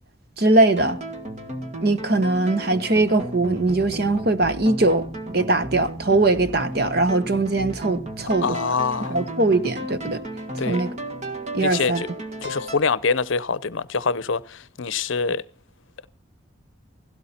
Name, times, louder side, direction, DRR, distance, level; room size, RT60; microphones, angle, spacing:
voice 1, 0.4-1.0 1.8-8.6 9.1-10.2 10.7-10.9 11.5-12.0, right 2 dB, 50° right, 1.1 m, -21 dB
sound 1, 0.7-12.8, right 1 dB, 35° right, 1.7 m, -34 dB
voice 2, 8.4-9.2 10.6-10.8 11.6-12.1 12.4-15.4, left 4 dB, 70° left, 0.7 m, -25 dB
17.0 x 16.0 x 4.3 m
head